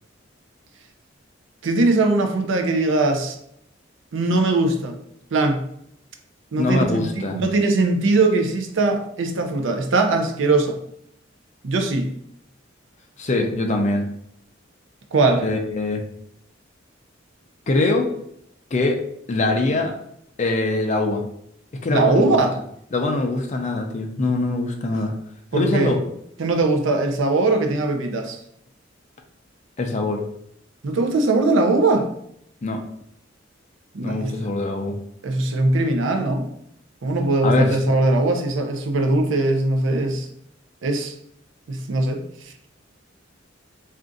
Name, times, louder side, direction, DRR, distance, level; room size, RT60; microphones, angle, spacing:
voice 1, 1.6-3.4 4.1-5.0 5.3-5.6 6.5-10.8 11.6-12.1 15.1-15.4 21.9-22.5 25.5-26.0 26.4-28.4 30.8-32.1 33.9-34.4 35.2-36.5 37.0-40.3 40.8-41.1 41.7-42.5, right 2 dB, 70° right, 5 dB, 0.5 m, -20 dB
voice 2, 6.6-7.4 13.2-14.0 15.4-16.0 17.7-18.1 18.7-19.0 19.3-19.9 20.4-21.2 21.8-22.4 22.9-25.1 25.5-26.0 29.8-30.3 32.6-32.8 34.0-34.9 37.4-37.8, left 2 dB, 35° left, 3 dB, 0.4 m, -23 dB
2.5 x 2.4 x 3.8 m, 0.72 s
head